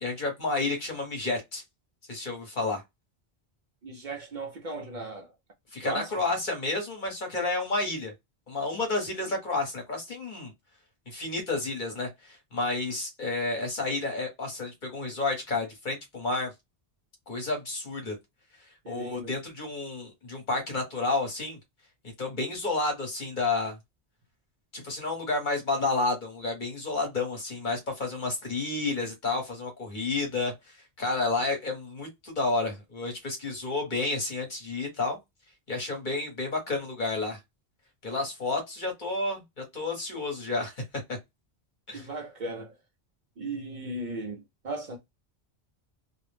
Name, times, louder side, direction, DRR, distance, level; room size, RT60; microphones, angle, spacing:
voice 1, 0.0-1.6 2.1-2.8 5.7-8.1 8.5-10.5 11.1-16.5 17.3-18.1 18.9-21.6 22.2-23.8 24.7-30.5 31.0-35.2 35.7-37.4 38.0-40.7 41.1-41.2 41.9-42.1, left 3 dB, 50° left, 1.1 m, -30 dB
voice 2, 3.8-5.3 5.8-6.1 18.8-19.3 41.9-42.7 43.4-45.0, right 2 dB, 55° right, 0.6 m, -37 dB
2.4 x 2.0 x 3.1 m
omnidirectional pair, 1.1 m